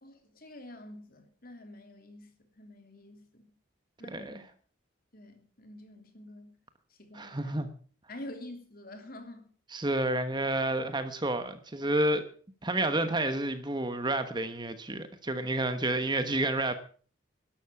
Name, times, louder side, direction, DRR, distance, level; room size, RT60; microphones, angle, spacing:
voice 1, 0.0-2.3 2.6-3.4 4.0-4.4 5.1-6.6 6.9-7.6 8.1-9.5, left 1 dB, 45° left, 3.1 m, -47 dB
voice 2, 4.1-4.4 7.1-7.7 9.7-12.2 12.6-16.7, right 1 dB, 20° right, 1.1 m, -30 dB
13.0 x 11.5 x 7.1 m
head